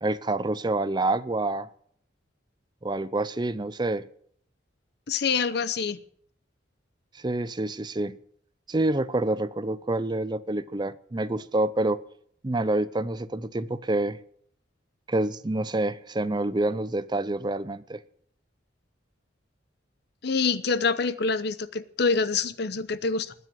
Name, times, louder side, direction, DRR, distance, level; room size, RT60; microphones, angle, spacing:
voice 1, 0.0-1.7 2.8-4.1 7.1-8.2 8.7-12.0 12.4-14.2 15.1-18.0, right 2 dB, 20° right, 0.5 m, -27 dB
voice 2, 5.1-6.0 20.2-23.3, left 5 dB, 60° left, 0.8 m, -26 dB
20.5 x 7.4 x 7.7 m
head